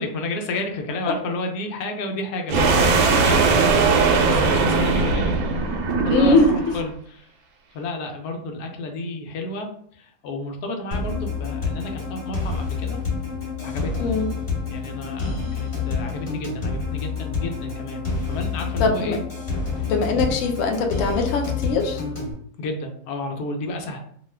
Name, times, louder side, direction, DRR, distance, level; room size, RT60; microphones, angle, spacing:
voice 1, 0.0-7.3 7.7-13.0 13.6-13.9 14.7-19.2 19.8-20.5 22.6-24.0, left 2 dB, 85° left, 3 dB, 1.1 m, -32 dB
sound 1, 2.5-6.8, right 4 dB, 80° right, 1.0 m, -19 dB
voice 2, 6.1-6.5 14.0-14.3 18.8-19.2 19.8-22.0, left 3 dB, 70° left, 3 dB, 0.8 m, -21 dB
sound 2, 10.9-22.3, left 5 dB, 25° left, 1.3 m, -28 dB
2.7 x 2.3 x 3.2 m, 0.63 s
omnidirectional pair, 1.6 m